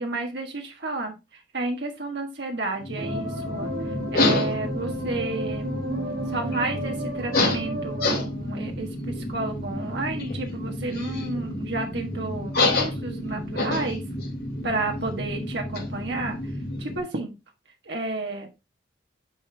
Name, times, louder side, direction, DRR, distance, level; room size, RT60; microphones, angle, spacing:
voice 1, 0.0-3.7 4.1-5.8 6.3-14.0 14.6-16.4 16.8-17.3 17.9-18.5, right 2 dB, 65° right, 3 dB, 1.5 m, -31 dB
sound 1, 2.8-17.0, left 2 dB, 55° left, 2.9 m, -29 dB
sound 2, 2.9-8.2, right 1 dB, 85° right, 5.3 m, -33 dB
9.6 x 5.2 x 3.3 m, 0.25 s
head